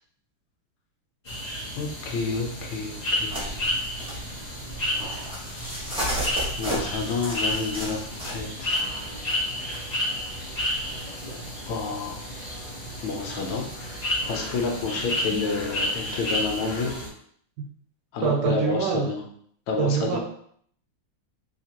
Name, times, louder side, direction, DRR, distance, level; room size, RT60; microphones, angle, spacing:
sound 1, 1.2-17.1, left 1 dB, 60° left, 0.4 m, -31 dB
voice 1, 1.8-3.7 6.6-8.8 11.7-12.2 13.0-16.9 18.1-19.2 19.7-20.2, left 4 dB, 80° left, 1 dB, 1.5 m, -29 dB
sound 2, 3.2-8.8 10.2-11.0, right 1 dB, 5° right, 0.9 m, -34 dB
sound 3, 8.8-17.0, right 1 dB, 30° left, 1.0 m, -47 dB
voice 2, 18.2-19.1 19.8-20.2, right 7 dB, 75° right, 2 dB, 1.0 m, -24 dB
3.8 x 2.9 x 2.8 m, 0.62 s
omnidirectional pair, 2.3 m